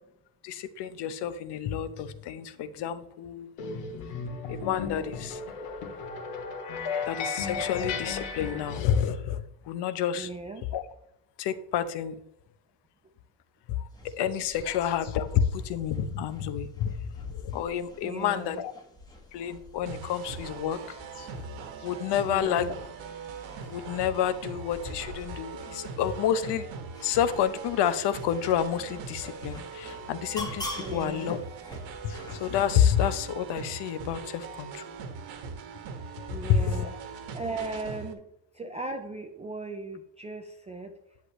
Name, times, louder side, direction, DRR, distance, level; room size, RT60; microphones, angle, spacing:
voice 1, 0.4-3.5 4.5-5.4 7.1-10.3 10.7-10.8 11.4-12.2 13.7-18.7 19.3-21.5 21.8-22.7 23.6-26.7 27.0-31.4 32.0-34.8 36.4-36.9, left 9 dB, 55° left, 12 dB, 0.8 m, -29 dB
sound 1, 3.6-9.1, left 5 dB, 80° left, 2.2 m, -35 dB
voice 2, 10.1-10.7 18.0-18.6 22.2-22.8 30.8-31.3 36.3-36.9 37.3-38.2 38.5-40.9, right 3 dB, 15° right, 4 dB, 0.3 m, -37 dB
sound 2, 13.9-32.6, left 2 dB, 10° left, 1.2 m, -46 dB
sound 3, 19.9-38.1, right 5 dB, 60° right, 1.6 m, -41 dB
10.5 x 8.1 x 3.0 m, 0.79 s
cardioid pair, 160°, 50 cm